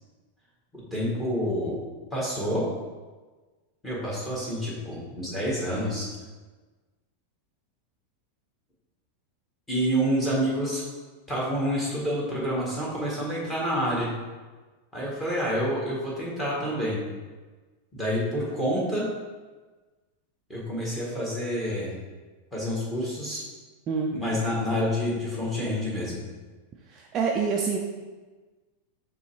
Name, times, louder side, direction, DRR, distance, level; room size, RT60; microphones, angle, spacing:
voice 1, 0.7-1.8 2.1-2.6 3.8-6.1 9.7-10.8 11.3-14.1 14.9-17.0 17.9-19.1 20.5-22.0 22.5-23.4 24.1-26.2, equal, 10° left, -6 dB, 1.7 m, -28 dB
voice 2, 26.9-27.8, right 5 dB, 25° right, 0 dB, 0.4 m, -26 dB
6.7 x 3.1 x 4.7 m, 1.3 s
supercardioid pair, 165°, 0 cm